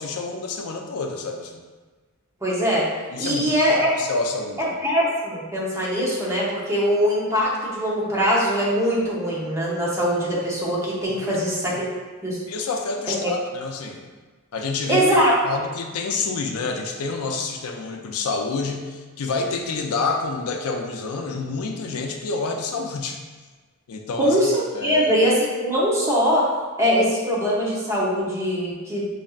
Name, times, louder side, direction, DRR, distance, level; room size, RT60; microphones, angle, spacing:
voice 1, 0.0-1.6 3.1-3.5 4.0-4.8 11.2-11.4 11.7-11.8 12.5-14.0 14.5-15.1 15.4-23.2 23.9-24.4 24.7-25.1, left 4 dB, 85° left, 3 dB, 0.5 m, -28 dB
voice 2, 2.4-2.9 3.2-3.9 4.6-11.9 12.2-12.4 13.1-13.3 14.9-15.6 24.2-26.5 26.8-29.1, equal, 15° right, -6 dB, 0.7 m, -22 dB
5.1 x 2.7 x 2.4 m, 1.3 s
head